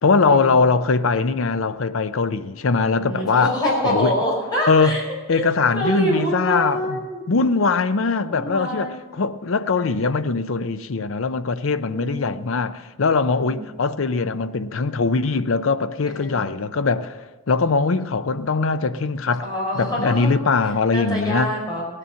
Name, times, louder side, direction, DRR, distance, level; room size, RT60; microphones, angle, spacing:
voice 1, 0.0-3.5 3.8-4.1 4.7-5.0 5.3-7.0 7.3-17.2 17.5-19.4 19.7-21.5, left 4 dB, 75° left, 0.6 m, -21 dB
voice 2, 3.0-5.0 5.3-5.5 5.7-7.2 8.3-9.1 11.8-12.2 13.3-13.7 16.1-16.7 19.4-20.3 20.9-21.9, equal, 20° left, 5.2 m, -26 dB
17.0 x 9.9 x 5.7 m
head